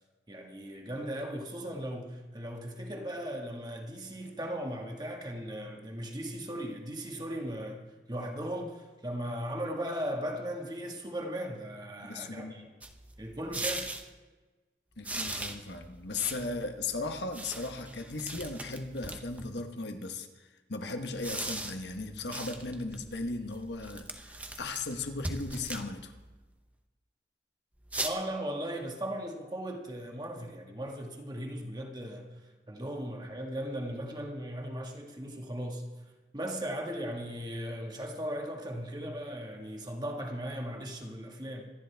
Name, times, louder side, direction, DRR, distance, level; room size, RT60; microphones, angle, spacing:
voice 1, 0.3-7.8 8.1-12.7 13.2-13.9 28.0-32.4 32.7-35.9 36.3-41.6, equal, 25° right, 1.7 m, -37 dB
voice 2, 12.0-12.7 15.0-26.1, left 3 dB, 80° left, 1.3 m, -37 dB
sound 1, 12.8-14.1 15.0-19.6 21.0-26.4 27.8-28.1, right 2 dB, 10° right, 0.7 m, -40 dB
25.5 x 10.5 x 3.5 m
head